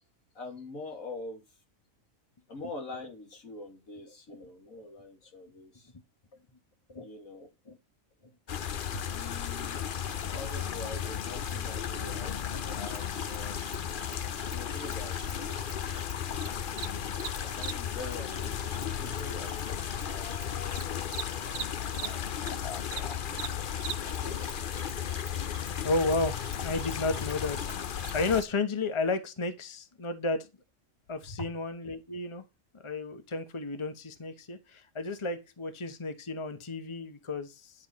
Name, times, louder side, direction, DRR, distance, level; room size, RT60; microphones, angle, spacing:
voice 1, 0.3-1.6 2.5-5.9 7.0-7.5 8.9-9.9 10.3-13.6 14.5-15.9 16.8-20.5 20.8-23.7 24.0-24.5 31.2-31.5, left 2 dB, 80° left, 2.6 m, -45 dB
sound 1, 8.5-28.4, left 8 dB, 50° left, 0.7 m, -34 dB
Cricket, 12.9-22.5 22.8-28.4, right 8 dB, 65° right, 1.2 m, -44 dB
voice 2, 17.1-17.6 22.6-22.8 25.8-30.5 31.1-32.4 32.7-37.9, left 3 dB, 25° left, 1.1 m, -33 dB
11.5 x 7.4 x 4.3 m
omnidirectional pair, 1.4 m